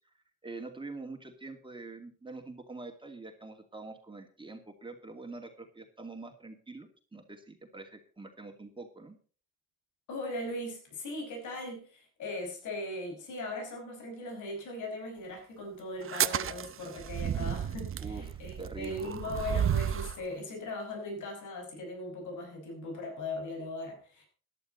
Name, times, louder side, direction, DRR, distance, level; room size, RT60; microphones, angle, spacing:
voice 1, 0.4-9.2 18.0-19.1, right 3 dB, 15° right, 4 dB, 2.5 m, -45 dB
voice 2, 10.1-24.3, left 2 dB, 80° left, 3 dB, 5.6 m, -39 dB
sound 1, 16.0-20.2, right 9 dB, 45° right, 0.8 m, -32 dB
14.5 x 11.5 x 4.0 m, 0.40 s
cardioid pair, 90°, 30 cm